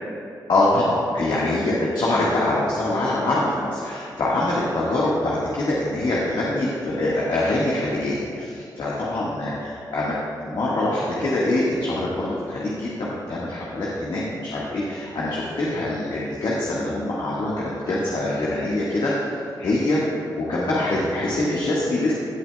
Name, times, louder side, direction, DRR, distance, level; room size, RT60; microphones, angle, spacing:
voice 1, 0.5-10.2 10.4-19.1 19.6-22.1, left 2 dB, 70° left, -6 dB, 1.6 m, -24 dB
17.0 x 7.9 x 2.3 m, 2.7 s
cardioid pair, 80°, 8 cm